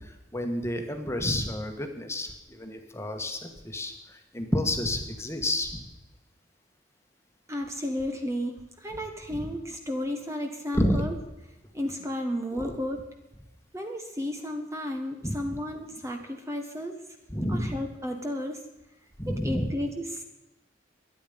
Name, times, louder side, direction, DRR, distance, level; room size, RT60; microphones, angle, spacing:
voice 1, 0.0-5.9 9.3-9.5 10.7-11.0 12.5-12.8 15.2-15.6 17.3-17.8 19.2-19.7, left 1 dB, 15° left, 4 dB, 1.7 m, -30 dB
voice 2, 7.5-11.1 11.7-13.0 13.7-17.0 17.5-18.6 19.3-20.2, left 1 dB, 15° right, 4 dB, 1.4 m, -33 dB
23.5 x 9.6 x 5.3 m, 0.97 s
head